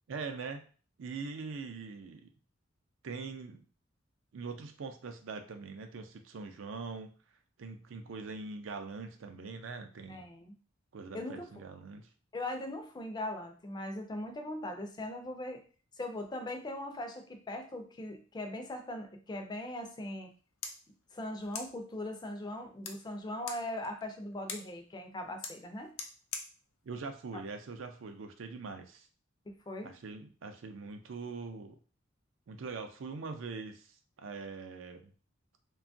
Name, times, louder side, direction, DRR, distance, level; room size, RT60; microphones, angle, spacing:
voice 1, 0.1-0.6 1.0-2.3 3.0-3.6 4.3-7.1 7.6-10.3 10.9-12.1 26.8-29.1 29.8-31.8 32.5-35.1, right 4 dB, 70° right, 6 dB, 0.4 m, -42 dB
voice 2, 10.1-10.5 11.1-11.5 12.3-15.6 16.0-20.3 21.1-25.9 29.5-29.9, left 1 dB, 20° left, 5 dB, 0.4 m, -40 dB
sound 1, 20.2-28.2, left 5 dB, 90° left, 0.5 m, -48 dB
2.8 x 2.3 x 2.6 m, 0.39 s
head